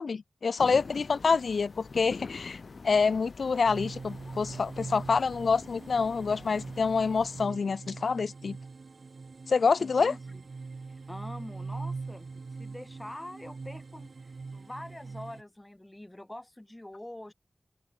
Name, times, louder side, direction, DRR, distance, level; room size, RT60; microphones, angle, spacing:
voice 1, 0.0-8.6 9.5-10.1, left 5 dB, 90° left, 0.4 m, -27 dB
sound 1, 0.6-7.4, left 4 dB, 70° left, 0.8 m, -45 dB
sound 2, 3.7-15.4, right 4 dB, 70° right, 2.3 m, -42 dB
voice 2, 9.8-10.4 10.9-12.3 12.6-14.1 14.5-17.3, left 1 dB, 20° left, 1.3 m, -44 dB
open air
wide cardioid pair, 60°, 0 cm